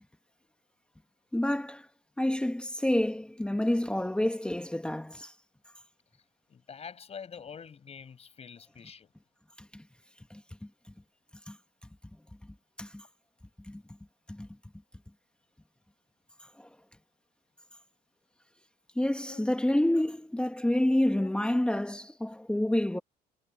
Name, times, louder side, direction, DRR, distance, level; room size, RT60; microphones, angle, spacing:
voice 1, 1.3-1.9 2.2-5.3 9.7-9.8 10.3-10.4 11.5-11.6 12.8-13.0 13.7-13.8 14.3-14.5 16.6-16.7 18.9-23.0, left 1 dB, 5° left, 1.5 m, -28 dB
voice 2, 6.5-9.1 19.3-19.5 20.9-21.3, left 6 dB, 40° left, 7.3 m, -46 dB
cardioid pair, 110°, 17 cm